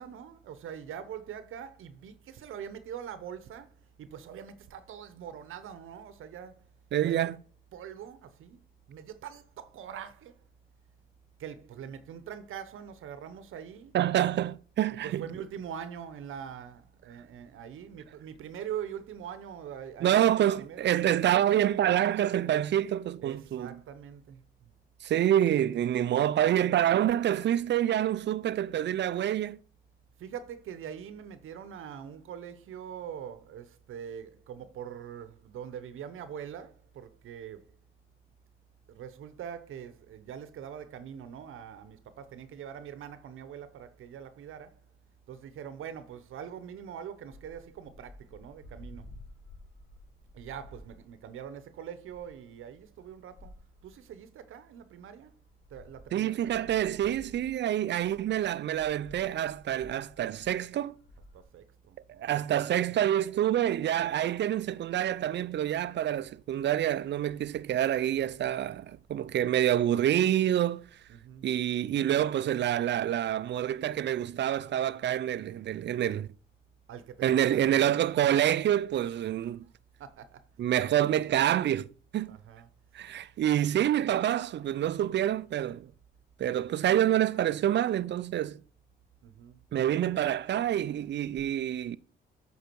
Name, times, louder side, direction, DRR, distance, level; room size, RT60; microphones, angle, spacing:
voice 1, 0.0-6.6 7.0-7.2 7.7-8.6 8.9-10.4 11.4-14.0 15.0-21.2 23.2-24.7 30.2-37.7 38.9-44.8 45.3-49.1 50.3-53.5 53.8-55.3 55.7-56.6 61.3-62.3 62.9-63.0 71.1-71.5 76.9-77.8 80.0-80.4 82.3-82.7 89.2-89.6, right 8 dB, 80° right, 0.8 m, -43 dB
voice 2, 6.9-7.3 13.9-15.2 20.0-23.7 25.0-29.6 56.1-61.0 62.2-70.9 71.4-76.3 77.2-79.6 80.6-82.4 82.9-85.9 86.4-88.6 89.7-92.0, right 11 dB, 60° right, 0.5 m, -27 dB
sound 1, 47.3-51.5 52.0-54.0 54.8-54.9 55.1-61.4, left 1 dB, 70° left, 2.1 m, -53 dB
8.2 x 4.7 x 4.5 m
cardioid pair, 75°, 21 cm